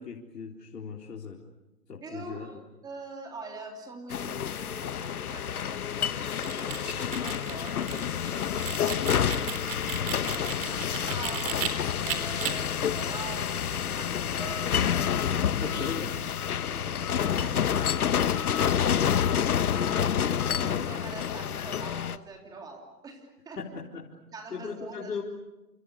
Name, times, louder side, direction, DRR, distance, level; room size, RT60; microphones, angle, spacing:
voice 1, 0.0-1.4 1.9-2.5 12.4-12.9 15.6-16.1 23.6-24.1 24.5-25.2, left 5 dB, 85° left, -2 dB, 4.4 m, -38 dB
voice 2, 2.0-2.6 2.8-15.2 15.6-15.8 16.7-18.5 18.8-23.6 24.3-25.2, right 3 dB, 10° right, 2 dB, 3.2 m, -45 dB
sound 1, 4.1-22.2, left 8 dB, 65° left, 1.4 m, -28 dB
sound 2, 6.2-11.7 12.1-12.5, right 10 dB, 35° right, 3.7 m, -36 dB
29.5 x 28.5 x 6.9 m, 1.0 s
hypercardioid pair, 165°, 48 cm